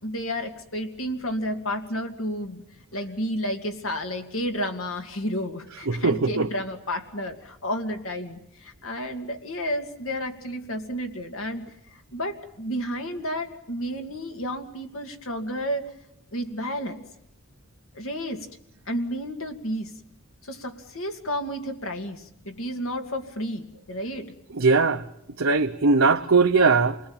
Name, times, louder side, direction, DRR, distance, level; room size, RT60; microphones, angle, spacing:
voice 1, 0.0-2.6 2.9-15.9 16.3-17.0 17.9-18.5 18.9-19.9 20.4-24.3, equal, 70° left, 2.5 m, -31 dB
voice 2, 5.9-6.5 24.6-25.0 25.4-27.0, right 4 dB, 75° right, 1.0 m, -20 dB
28.5 x 20.5 x 8.9 m
head